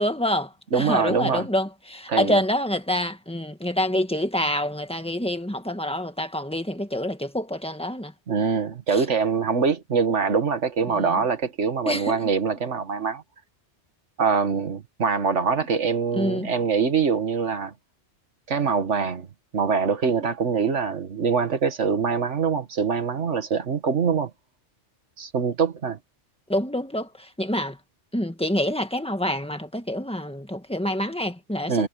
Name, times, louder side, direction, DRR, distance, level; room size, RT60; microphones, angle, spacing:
voice 1, 0.0-8.1 8.9-9.1 10.9-11.1 11.9-12.3 16.1-16.5 26.5-27.8 28.1-31.9, left 1 dB, 5° left, 1.6 m, -27 dB
voice 2, 0.7-1.5 2.1-2.4 8.3-13.2 14.2-17.7 18.5-19.3 19.5-24.3 25.2-26.0 31.7-31.9, right 5 dB, 75° right, 1.9 m, -24 dB
omnidirectional pair, 1.2 m